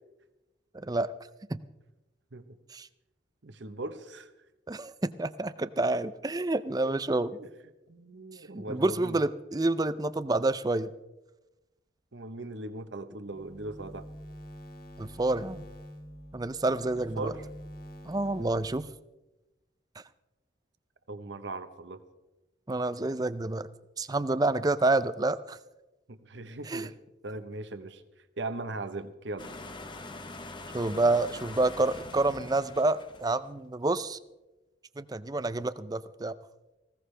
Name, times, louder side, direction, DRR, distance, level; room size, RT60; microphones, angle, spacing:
voice 1, 0.7-1.1 1.5-1.6 2.7-2.9 4.7-7.4 8.5-10.9 15.0-15.6 16.3-17.3 18.1-18.9 22.7-23.7 24.0-25.6 26.7-26.9 30.7-34.2 35.0-36.3, right 2 dB, 20° right, 14 dB, 0.5 m, -28 dB
voice 2, 3.4-4.3 6.9-7.5 7.9-9.2 12.1-14.1 17.2-17.4 21.1-22.0 26.1-26.9 27.2-28.0 28.4-29.5, right 2 dB, 75° right, 10 dB, 1.1 m, -39 dB
sound 1, 13.3-18.8, equal, 50° left, 2.2 m, -47 dB
sound 2, 29.4-33.6, left 2 dB, 25° left, 1.0 m, -44 dB
19.0 x 16.5 x 3.4 m, 1.0 s
head